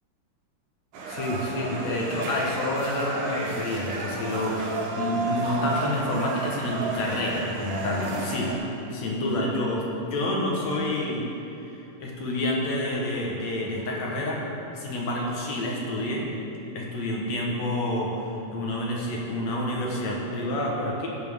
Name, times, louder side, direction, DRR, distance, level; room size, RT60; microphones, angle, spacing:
sound 1, 0.9-8.6, right 3 dB, 75° right, 2.7 m, -32 dB
voice 1, 1.1-4.6 5.0-8.5 8.9-11.3 11.7-14.4 14.8-16.2 16.8-18.2 18.5-21.1, left 1 dB, 65° left, -2 dB, 2.4 m, -28 dB
16.0 x 7.2 x 3.6 m, 2.9 s
omnidirectional pair, 3.7 m